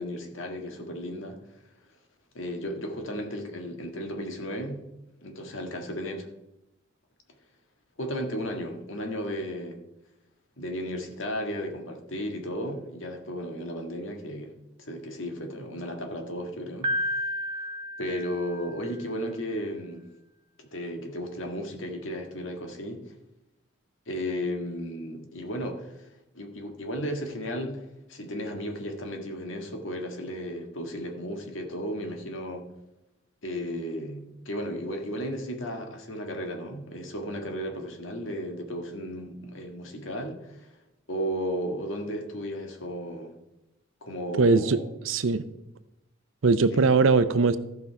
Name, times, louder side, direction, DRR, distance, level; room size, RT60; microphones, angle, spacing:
voice 1, 0.0-1.4 2.4-4.8 5.2-6.3 8.0-9.8 10.6-14.5 14.8-16.9 18.0-20.0 20.6-23.0 24.1-26.1 26.3-32.7 33.4-40.7 41.1-43.4 44.0-44.9 46.7-46.9, equal, 75° left, 3 dB, 1.7 m, -34 dB
Piano, 16.8-18.9, equal, 25° right, 0.6 m, -31 dB
voice 2, 44.4-44.8 45.0-45.5 46.4-47.6, right 4 dB, 80° right, 13 dB, 0.6 m, -20 dB
14.5 x 5.5 x 4.6 m, 0.92 s
head